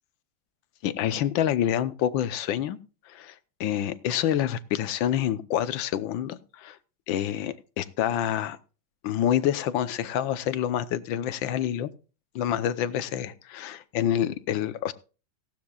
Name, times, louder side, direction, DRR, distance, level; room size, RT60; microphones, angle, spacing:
voice 1, 0.8-2.8 3.0-6.8 7.1-8.6 9.0-11.9 12.3-14.9, left 10 dB, 75° left, 13 dB, 1.5 m, -27 dB
17.5 x 12.0 x 2.3 m, 0.34 s
omnidirectional pair, 2.2 m